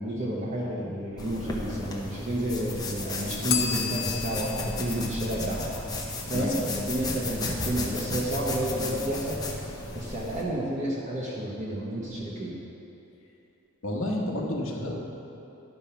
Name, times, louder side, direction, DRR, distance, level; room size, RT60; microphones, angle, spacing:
voice 1, 0.0-5.7 6.3-9.4 9.9-12.6, right 1 dB, 35° right, -6 dB, 1.1 m, -30 dB
sound 1, 1.2-10.4, left 2 dB, 20° left, 0.7 m, -34 dB
Bell, 3.5-6.3, left 8 dB, 50° left, 0.6 m, -34 dB
voice 2, 13.8-15.0, left 1 dB, 65° left, -1 dB, 1.2 m, -30 dB
11.0 x 5.3 x 5.7 m, 2.9 s
head